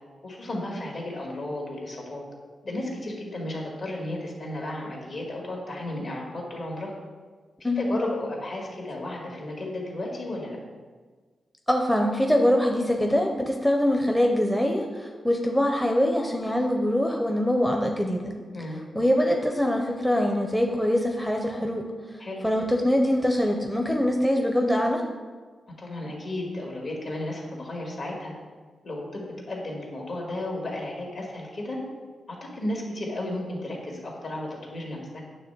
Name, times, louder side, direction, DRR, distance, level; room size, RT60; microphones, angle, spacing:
voice 1, 0.2-2.2 2.6-6.9 7.6-10.6 18.5-18.8 22.2-22.4 25.8-28.3 28.8-31.8 32.3-35.2, left 1 dB, 55° left, -1 dB, 2.1 m, -33 dB
voice 2, 11.7-18.3 18.9-21.9 22.4-25.0, equal, 5° left, 1 dB, 0.7 m, -23 dB
9.4 x 3.3 x 6.8 m, 1.4 s
wide cardioid pair, 105°, 0 cm